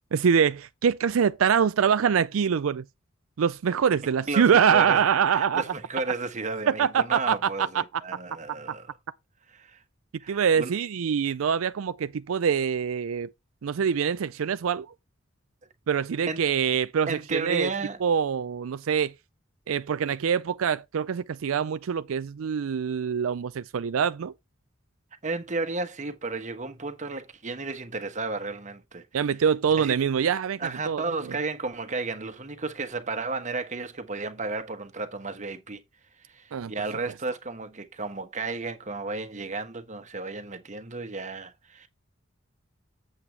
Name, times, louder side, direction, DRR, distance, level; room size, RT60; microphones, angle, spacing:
voice 1, 0.1-2.8 3.4-5.6 6.8-7.4 10.3-13.3 13.6-14.9 15.9-17.7 18.0-19.1 19.7-24.3 29.1-30.6 30.9-31.0 36.5-36.7, right 7 dB, 85° right, 0.4 m, -24 dB
voice 2, 4.3-5.0 5.3-8.9 9.5-9.8 10.2-10.7 16.3-16.4 17.1-18.0 25.2-29.0 29.8-30.0 30.6-35.8 36.2-41.9, right 3 dB, 40° right, 1.2 m, -33 dB
7.8 x 7.8 x 3.4 m
head